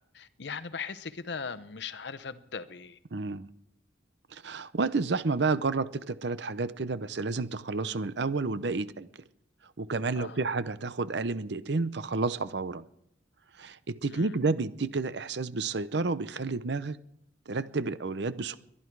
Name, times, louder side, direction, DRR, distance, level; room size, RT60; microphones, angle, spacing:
voice 1, 0.0-3.0 10.1-10.5 14.1-14.4, left 5 dB, 65° left, 0.8 m, -39 dB
voice 2, 3.1-3.5 4.3-9.1 9.8-12.9 13.6-17.0 17.5-18.6, right 3 dB, 65° right, 0.7 m, -30 dB
22.5 x 11.5 x 4.7 m
head